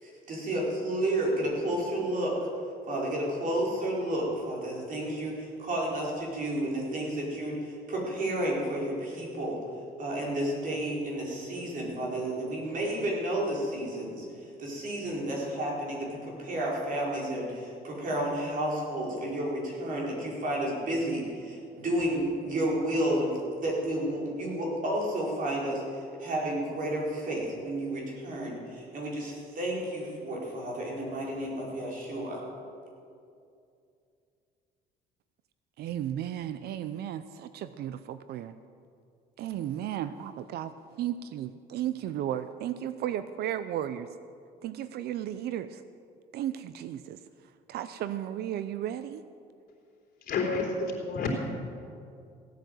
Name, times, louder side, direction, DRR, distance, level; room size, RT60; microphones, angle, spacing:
voice 1, 0.0-2.4 2.9-9.6 10.0-14.2 14.6-32.4, right 1 dB, 55° right, -3 dB, 4.8 m, -31 dB
voice 2, 35.8-38.5 39.4-40.7 41.0-44.1 44.6-45.8 46.3-47.2 47.7-49.2, right 11 dB, 70° right, 12 dB, 0.6 m, -34 dB
voice 3, 50.2-51.4, left 3 dB, 60° left, 0 dB, 3.7 m, -29 dB
16.5 x 9.2 x 7.8 m, 2.5 s
cardioid pair, 110°, 17 cm